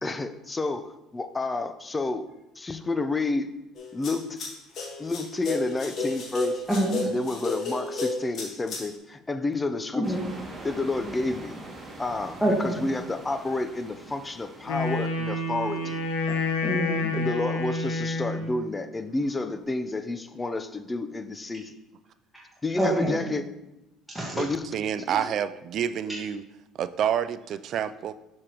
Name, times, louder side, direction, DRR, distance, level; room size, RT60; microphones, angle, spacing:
voice 1, 0.0-2.2 2.6-3.5 3.9-4.4 5.0-6.5 7.1-10.2 10.6-11.5 12.0-16.0 17.1-21.7 22.6-23.4 24.4-24.7 25.0-25.3, left 2 dB, 20° left, 10 dB, 0.6 m, -30 dB
sound 1, 3.7-8.8, left 3 dB, 50° left, 2.0 m, -32 dB
voice 2, 6.7-7.1 9.9-10.2 12.4-12.9 16.3-17.2 22.8-23.4 24.1-24.4 25.1-25.3 25.8-26.0, right 1 dB, ahead, -6 dB, 1.5 m, -28 dB
sound 2, 10.0-16.2, right 2 dB, 25° right, 2.1 m, -44 dB
Wind instrument woodwind instrument, 14.6-18.6, left 2 dB, 90° left, 0.9 m, -29 dB
voice 3, 24.3-26.4 26.8-28.1, right 9 dB, 55° right, 14 dB, 0.4 m, -28 dB
6.8 x 6.4 x 3.0 m, 0.94 s
supercardioid pair, 90°, 0 cm